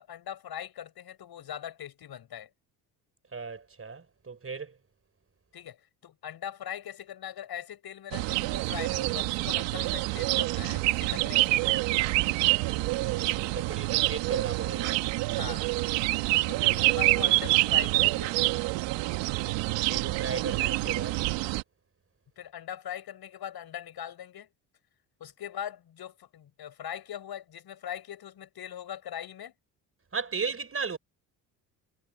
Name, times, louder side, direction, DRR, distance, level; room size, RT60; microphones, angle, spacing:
voice 1, 0.0-2.5 5.5-5.8 6.0-11.6 15.4-15.6 16.5-18.4 22.4-24.5 25.2-29.5, left 10 dB, 60° left, 7.8 m, -41 dB
voice 2, 3.3-4.8 12.8-15.0 19.4-21.2 30.1-31.0, right 5 dB, 30° right, 5.0 m, -36 dB
sound 1, 8.1-21.6, right 20 dB, 80° right, 1.7 m, -27 dB
supercardioid pair, 65°, 43 cm